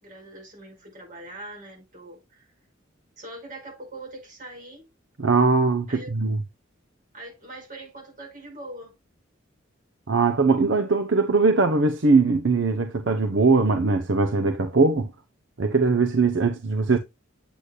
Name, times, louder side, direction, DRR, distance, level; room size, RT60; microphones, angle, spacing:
voice 1, 0.0-2.5 3.2-4.9 5.9-6.1 7.1-9.0, right 1 dB, 40° right, 5.4 m, -42 dB
voice 2, 5.2-6.4 10.1-15.1 15.6-17.0, right 4 dB, 65° right, 0.8 m, -21 dB
8.3 x 8.2 x 2.4 m
head